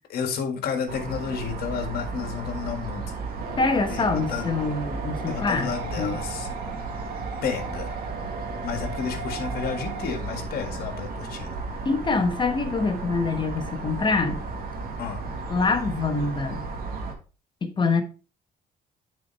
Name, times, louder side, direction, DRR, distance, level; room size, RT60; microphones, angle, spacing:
voice 1, 0.1-3.0 3.9-4.5 5.3-6.5 7.4-8.0 8.6-11.6 15.0-15.2, left 7 dB, 65° left, 1.8 m, -31 dB
sound 1, 0.9-17.1, right 3 dB, 60° right, 1.5 m, -34 dB
sound 2, 3.4-10.1, right 4 dB, 75° right, 1.6 m, -38 dB
voice 2, 3.6-6.2 11.8-14.5 15.5-16.6 17.6-18.0, left 4 dB, 30° left, 1.1 m, -25 dB
9.6 x 4.5 x 3.2 m
cardioid pair, 110°, 17 cm